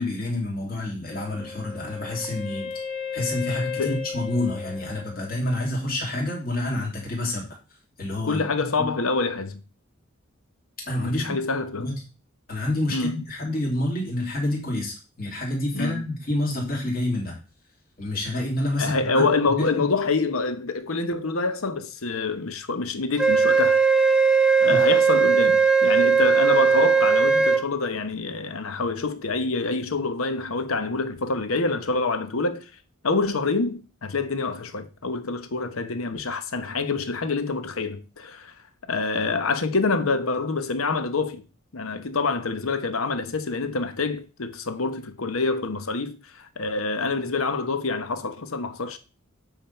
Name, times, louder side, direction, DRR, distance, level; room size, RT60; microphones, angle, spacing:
voice 1, 0.0-2.7 3.1-7.4 8.0-8.4 8.8-8.9 10.9-11.2 11.8-11.9 12.5-17.3 18.0-19.3 19.5-19.8 24.7-24.8, left 1 dB, 45° left, 3.1 m, -28 dB
Wind instrument woodwind instrument, 1.1-5.9, left 6 dB, 15° left, 2.6 m, -35 dB
voice 2, 8.2-9.6 11.0-11.9 12.9-13.2 15.7-16.1 18.8-23.8 24.6-32.7 33.0-38.5 38.9-41.4 41.7-49.0, left 3 dB, 85° left, 1.0 m, -26 dB
Wind instrument woodwind instrument 2, 23.2-27.6, right 5 dB, 5° right, 0.6 m, -18 dB
8.9 x 3.8 x 5.6 m
head